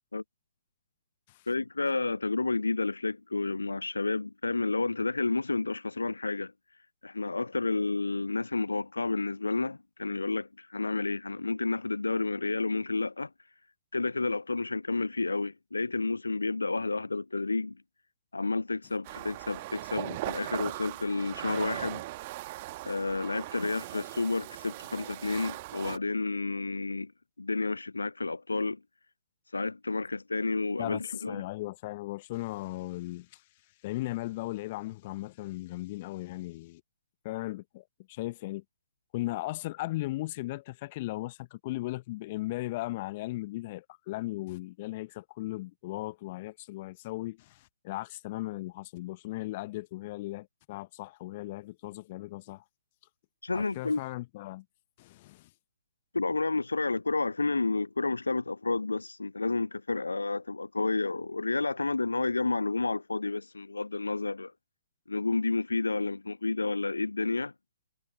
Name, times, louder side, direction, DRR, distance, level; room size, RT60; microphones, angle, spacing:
voice 1, 1.5-6.5 7.0-13.3 13.9-17.8 18.3-22.0 22.9-27.1 27.4-28.8 29.5-31.4 53.4-54.0 56.1-64.5 65.1-67.5, left 3 dB, 75° left, 0.5 m, -30 dB
sound 1, 19.0-26.0, right 19 dB, 35° right, 1.5 m, -39 dB
voice 2, 31.3-33.4 33.8-36.8 37.2-38.6 39.1-52.6 53.5-54.6 55.0-55.5, left 18 dB, 35° left, 0.8 m, -37 dB
figure-of-eight pair, 125°, 0 cm